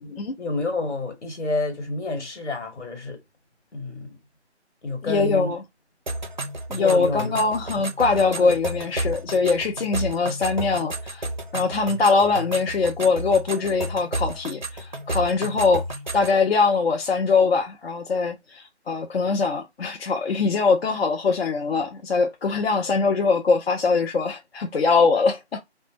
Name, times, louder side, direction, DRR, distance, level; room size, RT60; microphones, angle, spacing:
voice 1, 0.0-3.2 3.7-4.1 4.8-5.5 6.8-7.3 8.4-8.5, left 2 dB, 80° left, 1.2 m, -29 dB
voice 2, 5.0-5.6 6.7-11.3 11.5-15.8 16.1-25.6, left 4 dB, 60° left, 0.5 m, -22 dB
sound 1, 6.1-16.4, right 1 dB, 45° right, 0.4 m, -32 dB
2.1 x 2.0 x 3.2 m
hypercardioid pair, 180°, 35 cm